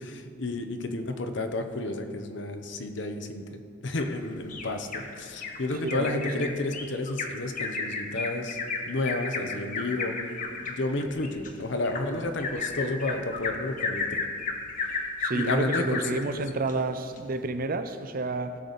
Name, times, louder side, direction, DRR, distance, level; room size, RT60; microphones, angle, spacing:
voice 1, 0.0-8.6 8.9-10.2 10.7-14.3 15.3-16.4, left 2 dB, 65° left, 0.8 m, -31 dB
Bird vocalization bird call bird song, 4.0-5.1 5.4-5.6 5.9-16.2 16.7-16.8 17.2-17.3, left 4 dB, 40° left, 1.1 m, -33 dB
voice 2, 5.8-6.5 15.2-18.6, right 2 dB, 50° right, 0.5 m, -30 dB
16.5 x 6.8 x 4.0 m
head